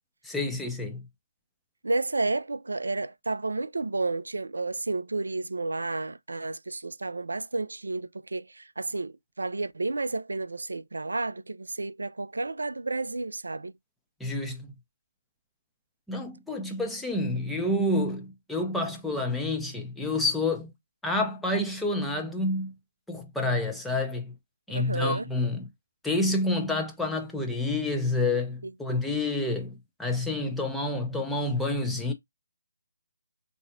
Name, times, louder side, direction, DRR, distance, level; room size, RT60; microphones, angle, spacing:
voice 1, 0.2-1.1 14.2-14.7 16.1-20.7 21.0-22.7 23.1-24.3 24.7-25.7 26.0-32.1, left 2 dB, 5° left, 0.5 m, -28 dB
voice 2, 1.8-13.7 24.7-25.3, right 3 dB, 70° right, 0.3 m, -31 dB
3.8 x 2.7 x 2.5 m
figure-of-eight pair, 145°, 0 cm